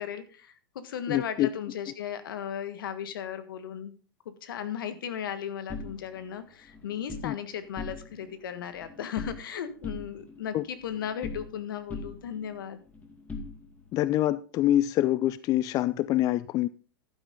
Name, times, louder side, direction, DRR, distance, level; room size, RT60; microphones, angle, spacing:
voice 1, 0.0-3.9 4.2-12.8, left 8 dB, 75° left, 1.6 m, -36 dB
voice 2, 1.1-1.5 7.2-7.4 10.5-10.6 13.9-16.7, left 14 dB, 30° left, 0.4 m, -25 dB
sound 1, 5.7-7.3 7.7-8.3 8.6-9.5 9.8-11.6 11.9-14.0, left 3 dB, 15° left, 2.1 m, -41 dB
11.5 x 9.5 x 3.7 m
hypercardioid pair, 120°, 11 cm